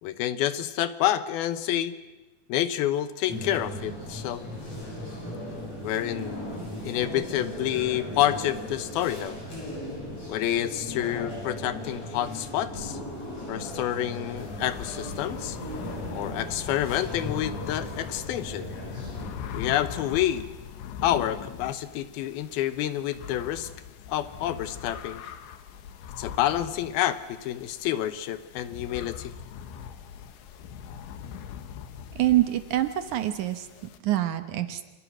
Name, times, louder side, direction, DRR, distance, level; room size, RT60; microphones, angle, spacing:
voice 1, 0.0-2.0 2.5-4.5 5.8-6.4 6.8-9.4 10.3-13.0 13.5-15.6 16.1-18.7 19.5-20.4 21.0-23.7 24.1-25.2 26.2-29.3, left 12 dB, 70° left, 12 dB, 2.6 m, -28 dB
sound 1, 3.3-19.3, left 1 dB, 35° left, 8.6 m, -37 dB
sound 2, 14.4-34.0, left 8 dB, 85° left, 3.9 m, -41 dB
voice 2, 32.1-34.8, right 14 dB, 70° right, 9 dB, 1.9 m, -26 dB
28.5 x 27.0 x 6.2 m, 1.1 s
omnidirectional pair, 5.1 m